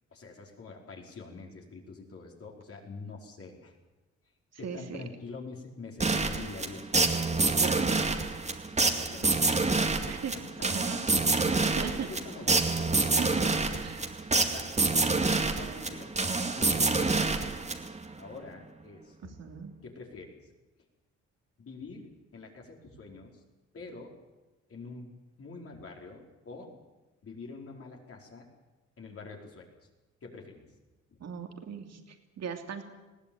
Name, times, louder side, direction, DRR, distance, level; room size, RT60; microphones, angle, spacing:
voice 1, 0.1-3.7 4.6-6.9 7.1-8.3 8.9-10.2 11.6-13.1 13.4-14.1 14.5-16.1 16.5-17.4 18.2-19.5 19.8-20.4 21.6-23.4 23.7-24.2 24.7-25.1 25.4-26.7 27.2-28.5 29.0-29.7 30.2-30.6 31.1-31.3, left 3 dB, 50° left, 0 dB, 4.8 m, -46 dB
voice 2, 4.6-5.0 7.6-7.8 10.1-10.3 10.6-12.1 13.0-13.5 13.8-14.0 19.2-19.7 31.2-32.8, right 7 dB, 60° right, 4 dB, 3.0 m, -39 dB
sound 1, 6.0-18.1, right 3 dB, 20° right, 2.2 m, -27 dB
20.5 x 16.0 x 8.8 m, 1.1 s
cardioid pair, 90°, 30 cm